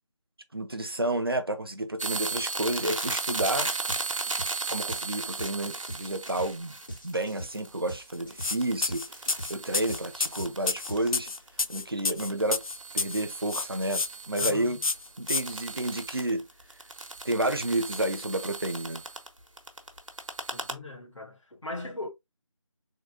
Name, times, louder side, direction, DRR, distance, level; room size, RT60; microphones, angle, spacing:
voice 1, 0.5-3.7 4.7-6.7 7.0-9.2 9.5-11.3 11.7-12.6 12.9-14.8 15.2-16.5 17.2-19.0, right 1 dB, 45° right, 0.5 m, -30 dB
sound 1, 2.0-11.6 11.9-19.3 19.6-20.7, right 3 dB, 65° right, 1.0 m, -36 dB
sound 2, 3.4-3.6 3.9-11.7, equal, 35° left, 1.0 m, -43 dB
sound 3, 8.4-8.6 8.8-13.2 13.5-14.1 14.4-14.5 14.8-15.4, left 3 dB, 85° left, 0.4 m, -29 dB
voice 2, 14.4-14.8 20.5-22.1, left 2 dB, 60° left, 1.3 m, -39 dB
3.7 x 2.2 x 3.5 m
figure-of-eight pair, 170°, 17 cm